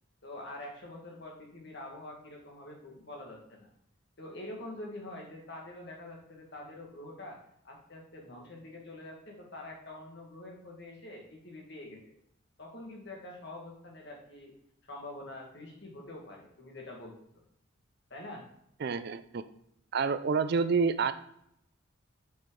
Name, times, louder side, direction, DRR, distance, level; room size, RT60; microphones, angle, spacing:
voice 1, 0.2-3.7 4.2-7.4 7.6-12.0 12.6-14.5 14.8-17.1 18.1-18.5, left 1 dB, 55° left, 0 dB, 1.9 m, -45 dB
voice 2, 18.8-19.4 19.9-21.1, right 5 dB, 50° right, 13 dB, 0.4 m, -28 dB
7.2 x 4.3 x 4.7 m, 0.74 s
head